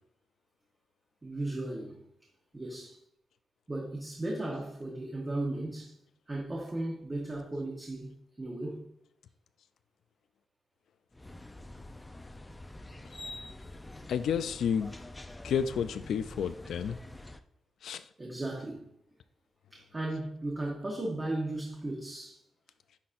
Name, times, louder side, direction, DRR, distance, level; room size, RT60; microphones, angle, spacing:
voice 1, 1.2-2.0 2.5-3.0 3.7-5.9 6.3-8.9 18.2-18.9 19.7-22.4, right 2 dB, 25° right, 1.0 m, -36 dB
sound 1, 11.1-17.4, left 1 dB, 15° left, 0.4 m, -46 dB
voice 2, 14.1-14.9 15.4-17.0 17.8-18.0, left 7 dB, 80° left, 0.3 m, -30 dB
9.5 x 4.2 x 2.5 m
cardioid pair, 105°, 0 cm